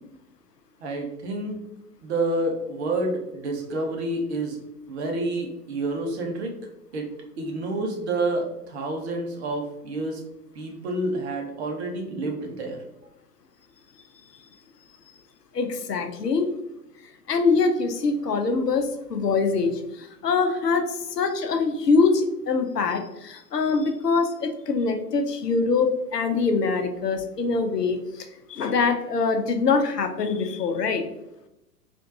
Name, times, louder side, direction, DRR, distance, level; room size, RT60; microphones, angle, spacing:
voice 1, 0.8-1.6 2.0-4.6 4.9-6.5 6.9-10.2 10.5-12.8, right 2 dB, 45° right, 2 dB, 0.9 m, -29 dB
voice 2, 15.5-16.5 17.3-31.0, left 4 dB, 75° left, 6 dB, 0.7 m, -24 dB
3.5 x 2.5 x 2.7 m, 0.87 s
figure-of-eight pair, 105°, 48 cm